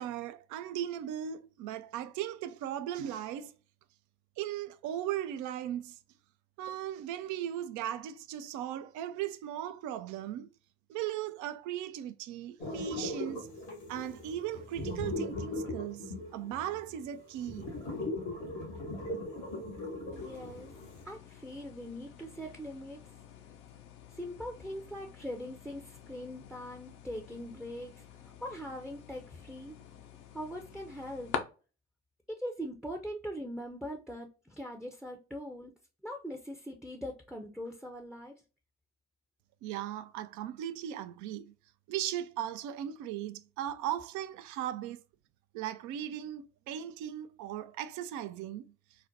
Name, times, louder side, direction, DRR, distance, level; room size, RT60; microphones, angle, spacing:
voice 1, 0.0-3.5 4.4-6.0 6.6-10.5 10.9-13.5 13.9-17.8 39.6-41.5 41.9-45.0 45.5-48.7, right 11 dB, 60° right, 0.4 m, -37 dB
sound 1, 12.6-21.0, left 2 dB, 90° left, 1.4 m, -39 dB
sound 2, 20.1-31.4, left 8 dB, 65° left, 0.6 m, -47 dB
voice 2, 20.1-20.7 21.0-23.1 24.1-29.8 30.3-31.4 32.3-35.7 36.0-38.4, equal, ahead, 0.5 m, -41 dB
3.9 x 2.1 x 2.6 m
hypercardioid pair, 50°, 34 cm